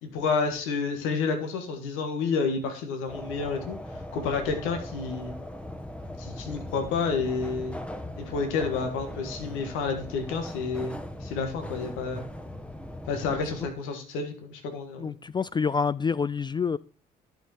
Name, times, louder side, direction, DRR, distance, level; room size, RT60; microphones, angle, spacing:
voice 1, 0.0-3.8 4.1-5.3 6.2-7.8 8.2-12.3 13.1-15.2, left 4 dB, 70° left, 1.8 m, -30 dB
sound 1, 3.1-13.7, left 1 dB, 5° left, 1.2 m, -39 dB
voice 2, 15.0-16.8, left 5 dB, 20° left, 0.3 m, -27 dB
11.0 x 5.9 x 4.3 m
hypercardioid pair, 50°, 21 cm